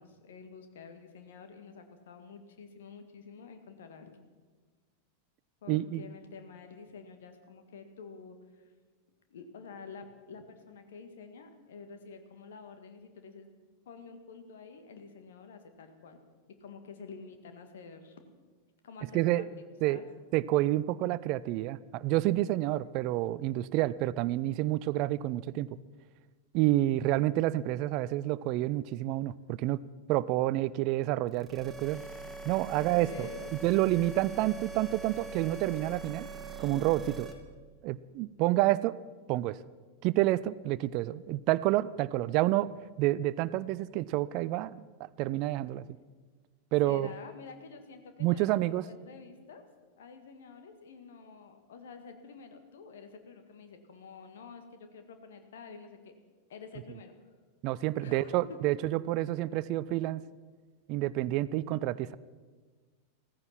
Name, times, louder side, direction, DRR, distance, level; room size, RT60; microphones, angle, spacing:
voice 1, 0.0-4.1 5.6-8.6 9.3-13.6 13.9-16.2 16.6-18.2 18.8-20.1 32.7-34.1 46.8-49.6 50.0-56.1 56.5-57.1 58.0-58.4, left 5 dB, 60° left, 7 dB, 1.9 m, -49 dB
voice 2, 5.7-6.0 19.1-19.4 19.8-20.0 20.3-25.7 26.5-29.8 30.1-32.0 32.4-36.3 36.6-37.3 37.8-39.0 39.3-39.6 40.0-42.7 43.0-45.8 46.7-47.1 48.2-48.9 57.6-60.2 60.9-62.2, right 16 dB, 40° right, 19 dB, 0.4 m, -29 dB
sound 1, 31.3-37.3, right 3 dB, 5° right, 2.4 m, -42 dB
16.0 x 15.0 x 5.9 m, 1.4 s
figure-of-eight pair, 90°, 0 cm